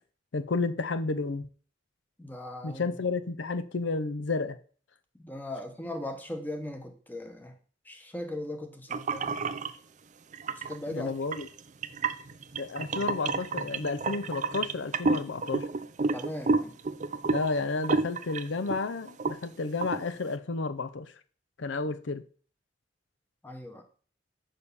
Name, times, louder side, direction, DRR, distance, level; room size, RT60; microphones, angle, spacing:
voice 1, 0.3-1.5 2.6-4.6 10.9-11.5 12.6-15.7 17.3-21.1 21.6-22.2, left 3 dB, 70° left, 0.6 m, -31 dB
voice 2, 2.2-3.0 5.2-7.5 7.8-9.4 10.6-11.1 16.1-16.7 23.4-23.8, left 1 dB, 10° left, 1.1 m, -38 dB
sound 1, 8.9-9.7 10.3-10.8 11.3-18.8 19.1-19.4 19.8-20.0, right 4 dB, 40° right, 0.5 m, -30 dB
6.7 x 5.5 x 7.0 m
head